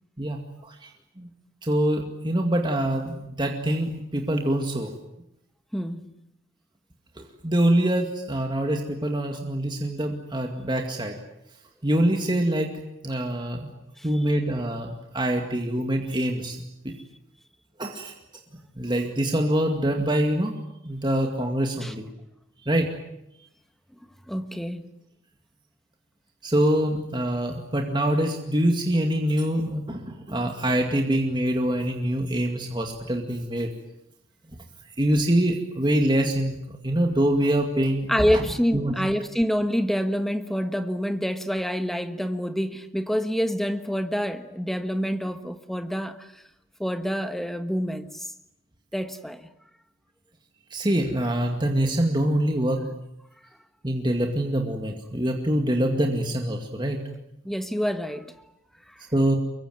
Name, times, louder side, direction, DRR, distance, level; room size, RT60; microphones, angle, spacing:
voice 1, 0.2-0.9 1.2-1.3 1.6-4.9 7.4-11.2 11.8-12.7 13.0-13.7 14.0-16.6 16.8-16.9 17.8-18.1 18.8-20.6 20.8-22.1 22.6-22.9 26.4-33.7 35.0-38.4 38.7-38.9 50.7-52.9 53.8-57.0 59.1-59.4, right 1 dB, 25° right, 2.2 m, -25 dB
voice 2, 5.7-6.2 14.0-14.2 21.8-21.9 24.3-24.9 38.1-46.4 46.8-48.3 48.9-49.5 57.4-58.3 58.9-59.1, equal, ahead, 1.4 m, -27 dB
24.0 x 23.0 x 9.4 m
head